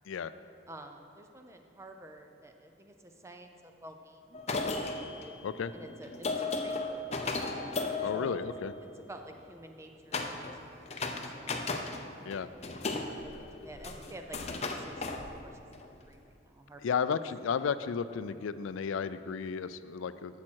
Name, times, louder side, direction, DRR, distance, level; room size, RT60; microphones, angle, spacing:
voice 1, 0.7-4.4 5.7-7.4 8.1-8.3 8.8-11.6 12.2-15.1 15.4-17.2, right 1 dB, 15° right, 5 dB, 0.5 m, -50 dB
sound 1, 4.3-9.0 10.1-10.6 10.9-12.1 12.3-15.9, left 3 dB, 35° left, 0.6 m, -35 dB
voice 2, 8.0-8.7 12.2-12.5 16.8-20.4, left 6 dB, 80° left, 13 dB, 0.4 m, -33 dB
12.0 x 7.3 x 4.6 m, 2.6 s
head